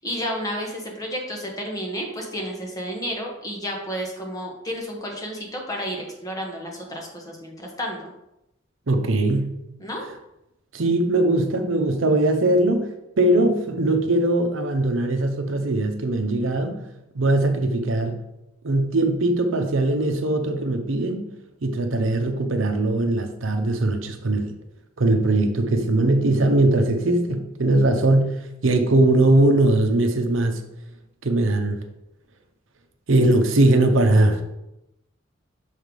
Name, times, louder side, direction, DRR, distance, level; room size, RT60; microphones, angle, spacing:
voice 1, 0.0-8.1 9.8-10.0, equal, 20° left, 0 dB, 1.1 m, -31 dB
voice 2, 8.9-9.5 10.7-12.9 13.2-16.8 17.1-18.2 18.6-21.2 21.6-24.5 25.0-30.6 31.2-31.8 33.1-34.4, right 2 dB, 75° right, 5 dB, 0.7 m, -20 dB
6.4 x 3.3 x 5.2 m, 0.88 s
head